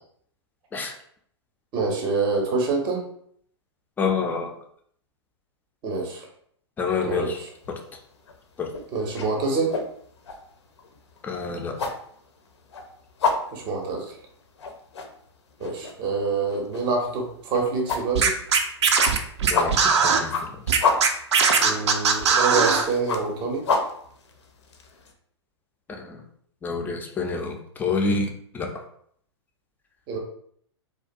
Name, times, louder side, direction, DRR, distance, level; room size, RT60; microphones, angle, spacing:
voice 1, 1.7-3.0 5.8-6.3 7.0-7.5 8.9-9.7 13.5-14.0 15.6-18.3 21.6-23.6 30.1-30.2, right 4 dB, 30° right, 1 dB, 0.6 m, -26 dB
voice 2, 4.0-4.5 6.8-7.4 7.7-7.8 8.6-8.7 11.2-11.9 19.4-20.6 25.9-26.2 26.6-28.7, left 4 dB, 10° left, 3 dB, 0.3 m, -28 dB
sound 1, 7.5-7.9 8.2-25.1, left 4 dB, 75° left, 0.5 m, -30 dB
Scratching (performance technique), 18.1-20.2 20.7-22.9, right 5 dB, 75° right, 0.4 m, -19 dB
2.4 x 2.2 x 2.5 m, 0.64 s
hypercardioid pair, 110°, 15 cm